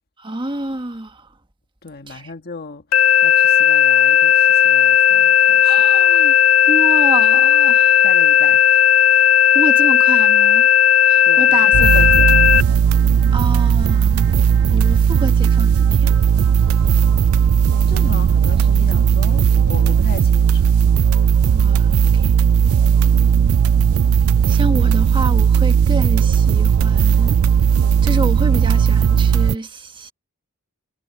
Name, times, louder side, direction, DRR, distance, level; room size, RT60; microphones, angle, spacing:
voice 1, 0.2-1.3 2.1-2.3 5.6-6.3 6.7-8.1 9.5-10.7 11.0-12.0 13.3-14.3 14.7-16.1 21.5-22.3 24.5-27.4 27.6-27.7 28.0-30.1, right 2 dB, 25° right, 1.4 m, -28 dB
voice 2, 1.8-2.8 3.2-5.7 8.0-8.7 11.2-12.7 16.7-16.9 17.9-20.7, left 4 dB, 45° left, 1.7 m, -35 dB
sound 1, 2.9-12.6, left 9 dB, 75° left, 0.5 m, -13 dB
sound 2, 11.7-29.6, right 7 dB, 75° right, 0.3 m, -15 dB
head